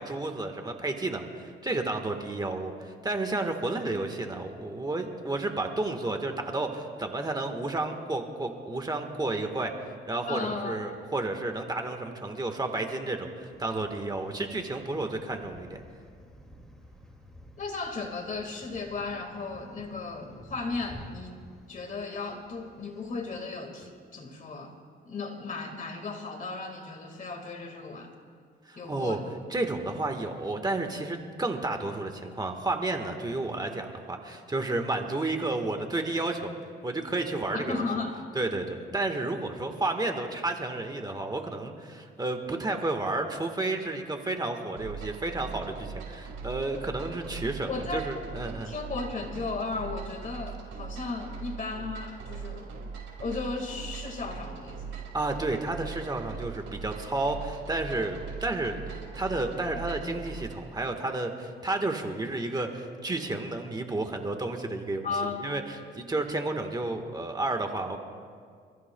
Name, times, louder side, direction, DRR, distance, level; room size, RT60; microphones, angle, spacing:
voice 1, 0.0-15.8 28.6-29.2 29.5-36.5 36.8-37.8 38.3-48.7 55.1-65.1 65.4-68.0, right 2 dB, 20° right, 4 dB, 1.4 m, -31 dB
voice 2, 10.3-10.8 17.6-21.4 21.7-24.7 25.1-28.1 28.8-29.2 37.5-38.2 47.7-52.9 53.2-55.0 65.0-65.5, left 3 dB, 40° left, 4 dB, 1.9 m, -35 dB
sound 1, 13.5-23.4, equal, 5° left, 2.2 m, -52 dB
sound 2, 44.8-60.6, right 5 dB, 85° right, 4.2 m, -41 dB
28.0 x 14.5 x 2.3 m, 2.1 s
cardioid pair, 90°, 20 cm